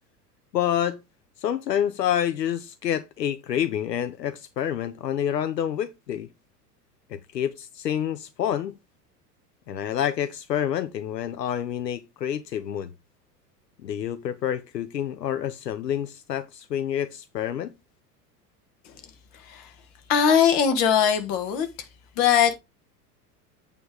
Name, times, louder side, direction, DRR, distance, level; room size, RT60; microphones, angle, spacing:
voice 1, 0.5-1.0 1.4-6.3 7.1-8.7 9.7-12.9 13.8-17.7, left 10 dB, 80° left, 0.7 m, -28 dB
voice 2, 20.1-21.7 22.2-22.6, left 8 dB, 40° left, 1.6 m, -20 dB
8.5 x 3.5 x 4.7 m
figure-of-eight pair, 90°, 49 cm